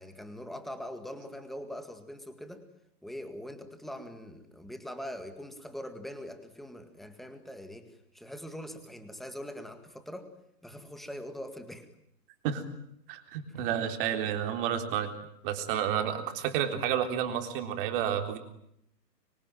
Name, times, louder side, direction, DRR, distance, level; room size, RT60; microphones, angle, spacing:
voice 1, 0.0-2.7 3.0-10.3 10.6-11.9, equal, ahead, 8 dB, 1.9 m, -42 dB
voice 2, 13.1-15.2 15.4-18.4, right 9 dB, 35° right, 7 dB, 3.8 m, -30 dB
25.0 x 24.5 x 9.1 m, 0.76 s
hypercardioid pair, 150°, 49 cm